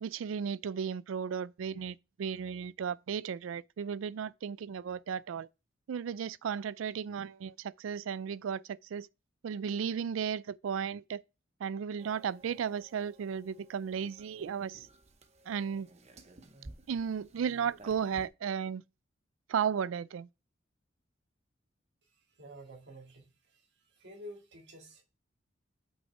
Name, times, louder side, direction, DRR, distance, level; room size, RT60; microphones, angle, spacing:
voice 1, 0.0-5.5 5.9-9.1 9.4-11.2 11.6-14.9 15.5-15.9 16.9-18.8 19.5-20.3, right 7 dB, 85° right, 0.4 m, -35 dB
sound 1, 12.0-18.3, right 2 dB, 35° right, 0.8 m, -55 dB
voice 2, 22.4-23.6 24.0-25.0, equal, 65° right, 2.1 m, -49 dB
5.7 x 5.6 x 4.4 m
head